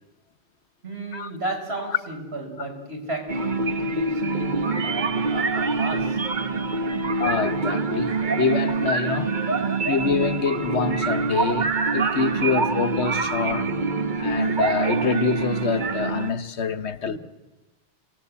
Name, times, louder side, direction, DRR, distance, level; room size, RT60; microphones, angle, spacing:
voice 1, 0.8-7.2 9.5-9.9 13.2-14.0 16.7-16.8 17.0-17.2, right 1 dB, 60° right, 5.6 m, -35 dB
sound 1, 3.3-16.3, right 4 dB, 45° right, 1.3 m, -25 dB
voice 2, 7.2-9.3 9.8-13.7 14.2-17.2, left 5 dB, 70° left, 1.3 m, -26 dB
30.0 x 19.0 x 8.5 m
omnidirectional pair, 1.2 m